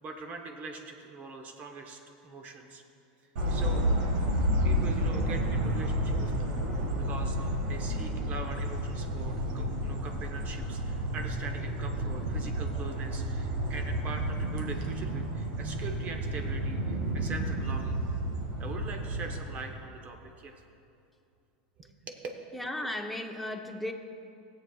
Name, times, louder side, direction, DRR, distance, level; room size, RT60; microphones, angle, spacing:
voice 1, 0.0-2.8 3.5-3.8 4.6-6.3 7.0-18.0 18.6-20.6 21.8-22.2, right 3 dB, 35° right, 4 dB, 0.9 m, -42 dB
sound 1, 3.4-19.4, right 1 dB, 80° right, 1.7 m, -31 dB
voice 2, 22.5-23.9, left 1 dB, ahead, 2 dB, 0.7 m, -35 dB
18.5 x 7.7 x 2.3 m, 2.5 s
supercardioid pair, 130°, 4 cm